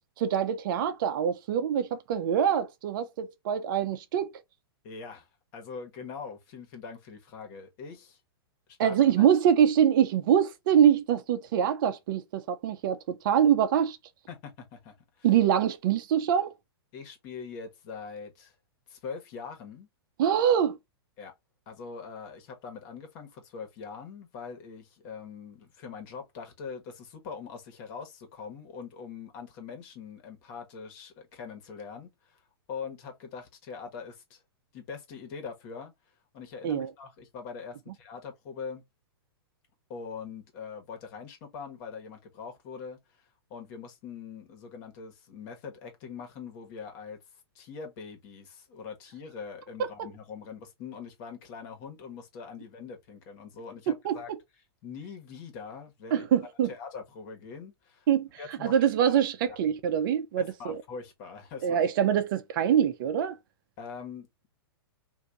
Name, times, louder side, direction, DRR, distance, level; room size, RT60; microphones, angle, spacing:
voice 1, 0.2-4.3 8.8-14.0 15.2-16.5 20.2-20.8 36.6-36.9 49.8-50.1 53.9-54.2 56.1-56.7 58.1-58.3 58.6-60.8 61.6-63.4, right 9 dB, 55° right, 0.6 m, -24 dB
voice 2, 4.8-8.2 8.8-9.3 14.3-15.3 16.9-18.5 18.9-19.9 21.2-21.3 21.7-32.4 32.7-34.4 34.7-35.9 36.3-38.8 39.9-47.2 47.5-54.3 54.8-56.3 56.7-58.1 58.4-58.8 60.4-61.9 63.8-64.5, left 5 dB, 45° left, 1.4 m, -42 dB
3.4 x 2.7 x 2.7 m
hypercardioid pair, 120°, 13 cm